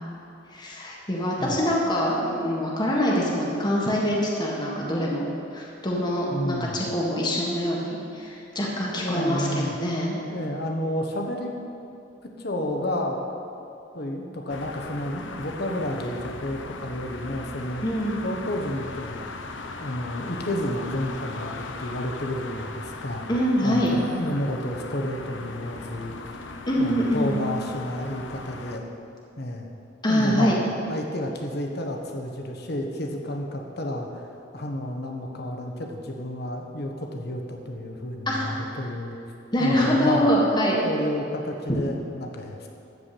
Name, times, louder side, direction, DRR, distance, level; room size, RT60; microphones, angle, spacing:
voice 1, 0.5-5.3 5.5-10.2 17.8-18.2 23.3-23.9 26.7-27.4 30.0-30.6 38.3-38.5 39.5-40.9, equal, 25° left, -3 dB, 1.5 m, -24 dB
voice 2, 6.3-6.9 9.0-9.8 10.3-11.5 12.2-13.2 13.9-17.9 18.2-19.2 19.8-23.3 23.6-26.4 26.8-28.8 29.4-29.7 30.0-39.2 39.6-40.3 40.8-42.7, left 1 dB, 55° left, 2 dB, 1.3 m, -31 dB
sound 1, 14.5-28.8, left 3 dB, 80° left, 0.8 m, -38 dB
13.5 x 4.9 x 8.4 m, 2.8 s
head